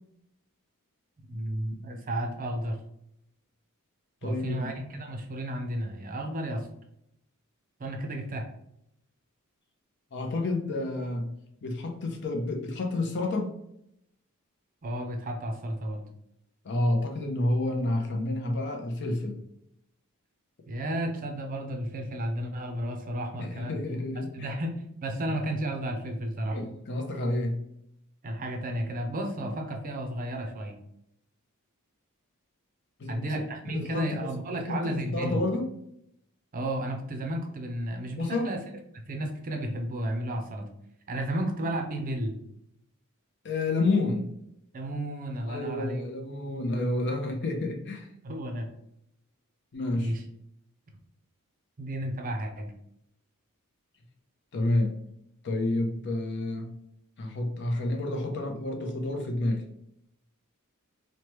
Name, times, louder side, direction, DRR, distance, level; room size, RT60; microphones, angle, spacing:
voice 1, 1.3-2.8 4.2-6.7 7.8-8.5 14.8-16.0 20.7-23.8 24.3-26.6 28.2-30.8 33.1-35.4 36.5-38.6 39.1-40.7 41.1-42.4 44.7-46.0 48.2-48.7 49.9-50.2 51.8-52.7, right 1 dB, 40° right, 4 dB, 0.5 m, -32 dB
voice 2, 4.2-4.7 10.1-11.3 11.6-13.5 16.6-19.4 23.4-24.5 26.5-27.6 33.0-33.3 33.6-34.3 34.7-35.7 38.2-38.5 43.4-44.3 45.4-48.1 49.7-50.1 54.5-55.0 55.4-56.7 57.2-59.6, left 2 dB, 55° left, 3 dB, 0.6 m, -29 dB
3.1 x 2.1 x 3.0 m, 0.76 s
head